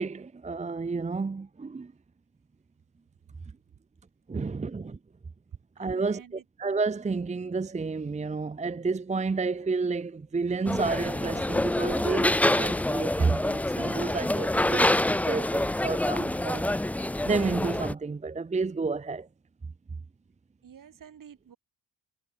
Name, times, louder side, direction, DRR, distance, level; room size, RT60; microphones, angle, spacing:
voice 1, 0.0-1.9 4.3-5.0 5.8-16.7 17.2-19.3, right 4 dB, 20° right, 0.7 m, -30 dB
voice 2, 5.7-6.5 20.6-21.6, right 8 dB, 65° right, 7.7 m, -50 dB
sound 1, 10.7-17.9, left 1 dB, 5° left, 0.4 m, -27 dB
cardioid pair, 75°, 36 cm